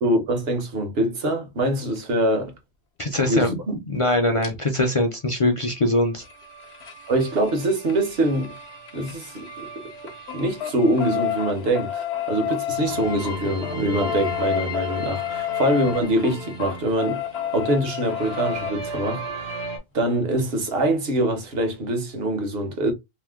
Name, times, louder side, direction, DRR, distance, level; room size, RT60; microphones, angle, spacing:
voice 1, 0.0-2.5 3.2-3.8 7.1-8.5 8.9-9.8 10.3-17.2 17.5-19.5 19.9-22.9, right 1 dB, 70° right, 1.1 m, -24 dB
voice 2, 3.0-3.6 3.9-6.2, left 1 dB, 45° left, 0.5 m, -22 dB
sound 1, 4.4-4.5 6.2-9.7 10.0-18.7 20.4-20.5 20.8-20.9 21.2-21.3, left 10 dB, 80° left, 0.9 m, -30 dB
sound 2, 5.9-11.7 12.7-17.6 17.9-19.8, right 2 dB, 85° right, 1.3 m, -37 dB
2.9 x 2.0 x 3.4 m
omnidirectional pair, 1.1 m